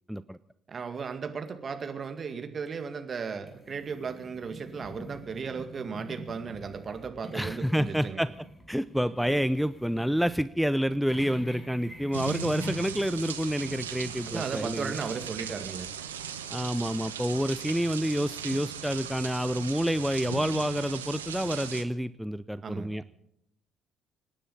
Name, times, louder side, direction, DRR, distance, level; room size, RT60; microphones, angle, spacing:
voice 1, 0.7-8.2 14.3-15.9 22.6-22.9, right 5 dB, 40° right, 7 dB, 2.1 m, -36 dB
sound 1, 3.5-15.3, equal, 20° left, 6.1 m, -45 dB
voice 2, 7.3-8.3 8.7-14.9 16.5-23.0, equal, ahead, 14 dB, 0.6 m, -28 dB
sound 2, 12.1-21.8, right 8 dB, 85° right, 0.9 m, -38 dB
26.0 x 10.0 x 5.6 m, 0.77 s
figure-of-eight pair, 45°, 0 cm